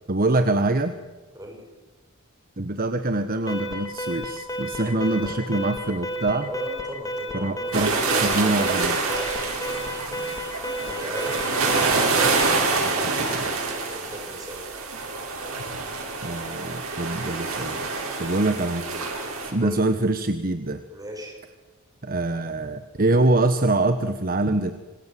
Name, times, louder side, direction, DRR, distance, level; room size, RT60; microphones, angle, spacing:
voice 1, 0.1-1.0 2.6-6.5 7.3-9.2 12.8-13.5 16.2-17.8 18.2-18.8 19.4-20.8 22.0-24.7, right 2 dB, 40° right, 9 dB, 1.2 m, -24 dB
Alarm, 3.5-12.7, equal, 15° left, 3.0 m, -32 dB
voice 2, 4.8-5.4 6.4-8.5 9.5-9.9 10.9-11.8 13.9-14.6 19.6-19.8 20.9-21.4, equal, 15° right, 2 dB, 6.6 m, -38 dB
sound 1, 7.7-19.5, right 3 dB, 75° right, 8.0 m, -26 dB
27.0 x 26.0 x 7.7 m, 1.2 s
head